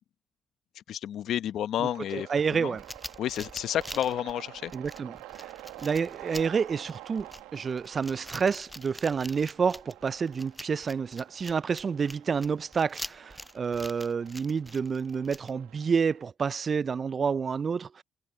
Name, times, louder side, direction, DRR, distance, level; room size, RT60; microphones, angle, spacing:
voice 1, 0.9-2.3 2.6-2.7 3.2-4.7, left 11 dB, 75° left, 1.1 m, -30 dB
voice 2, 1.8-2.8 4.7-5.5 5.8-18.0, right 6 dB, 55° right, 0.4 m, -29 dB
sound 1, 1.8-16.2, right 17 dB, 90° right, 1.2 m, -49 dB
sound 2, 2.8-15.5, equal, ahead, 6.3 m, -44 dB
supercardioid pair, 45°, 0 cm